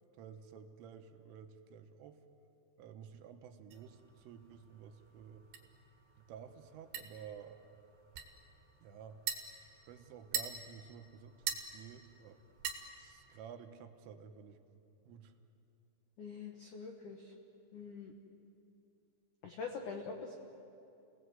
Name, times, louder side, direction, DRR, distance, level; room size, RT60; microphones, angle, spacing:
voice 1, 0.1-2.2 2.8-5.5 6.2-7.6 8.8-9.2 9.9-12.4 13.0-14.6 15.1-15.3, right 7 dB, 80° right, 6 dB, 3.5 m, -52 dB
sound 1, 3.7-13.4, right 8 dB, 65° right, 3.3 m, -46 dB
voice 2, 16.2-17.3 17.7-18.1 19.4-20.3, left 5 dB, 85° left, 2 dB, 1.7 m, -44 dB
29.5 x 19.0 x 8.0 m, 2.7 s
omnidirectional pair, 5.9 m